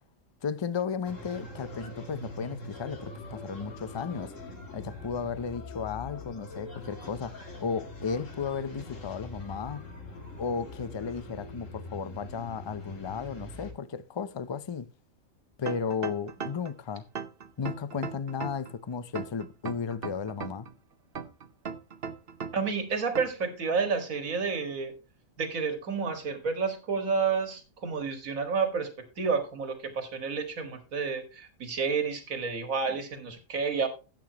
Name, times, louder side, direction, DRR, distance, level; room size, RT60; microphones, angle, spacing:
voice 1, 0.4-4.3 4.7-9.9 10.4-14.9 15.6-17.1 17.6-20.7, left 6 dB, 45° left, 0.3 m, -34 dB
sound 1, 1.0-13.7, left 2 dB, 65° left, 2.8 m, -43 dB
sound 2, 15.7-16.7 17.2-18.7 19.2-20.7 21.2-22.7 23.2-23.5, right 6 dB, 50° right, 1.0 m, -37 dB
voice 2, 22.5-24.9 25.4-28.9 29.2-33.9, right 5 dB, 75° right, 2.3 m, -30 dB
13.5 x 8.4 x 2.9 m
omnidirectional pair, 1.4 m